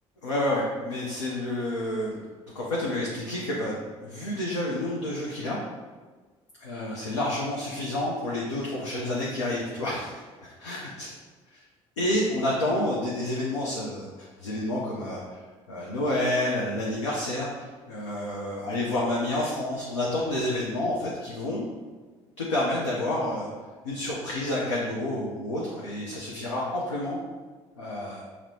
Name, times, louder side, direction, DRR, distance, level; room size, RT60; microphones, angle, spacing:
voice 1, 0.2-2.2 2.5-3.8 4.0-5.6 6.6-10.1 10.4-11.1 12.0-15.4 15.7-21.6 22.4-23.5 23.8-27.2 27.8-28.2, left 1 dB, 80° left, -5 dB, 0.5 m, -29 dB
5.9 x 2.0 x 2.8 m, 1.4 s
figure-of-eight pair, 55°, 15 cm